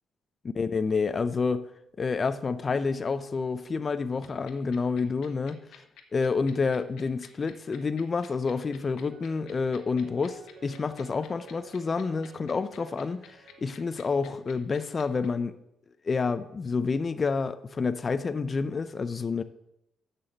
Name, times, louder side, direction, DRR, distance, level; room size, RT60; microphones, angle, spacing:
voice 1, 0.6-1.7 2.0-5.6 6.1-15.6 16.0-19.4, left 4 dB, 35° left, 0.6 m, -29 dB
sound 1, 4.2-15.3, left 10 dB, 85° left, 1.3 m, -50 dB
sound 2, 9.1-14.2, right 6 dB, 75° right, 1.4 m, -53 dB
7.1 x 6.9 x 7.9 m
cardioid pair, 90°, 0 cm